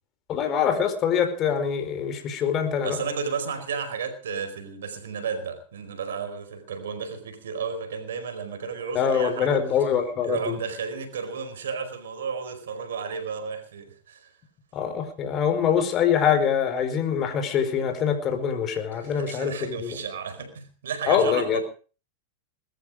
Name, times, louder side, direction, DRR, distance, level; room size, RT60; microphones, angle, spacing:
voice 1, 0.3-3.0 8.9-10.6 14.7-20.0 21.1-21.6, left 8 dB, 35° left, 4.8 m, -24 dB
voice 2, 2.8-9.6 10.2-14.3 18.9-21.6, right 6 dB, 80° right, 4.7 m, -33 dB
20.5 x 13.5 x 5.0 m
hypercardioid pair, 110°, 0 cm